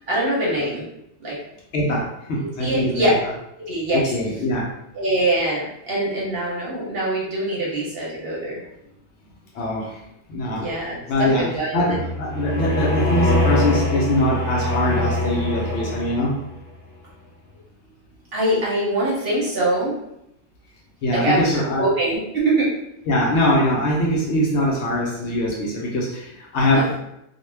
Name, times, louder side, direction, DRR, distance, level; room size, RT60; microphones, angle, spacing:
voice 1, 0.1-0.9 1.2-1.4 2.6-3.2 3.7-4.1 4.9-8.6 10.5-12.0 18.3-20.0 21.1-22.7 26.7-27.0, right 1 dB, 55° right, -5 dB, 0.8 m, -23 dB
voice 2, 1.7-3.1 3.9-4.7 9.5-10.0 10.3-16.3 21.0-21.9 23.1-27.0, left 1 dB, 65° left, -2 dB, 0.8 m, -22 dB
sound 1, 11.9-16.5, left 1 dB, 30° left, 0.7 m, -23 dB
2.3 x 2.1 x 3.2 m, 0.83 s
omnidirectional pair, 1.4 m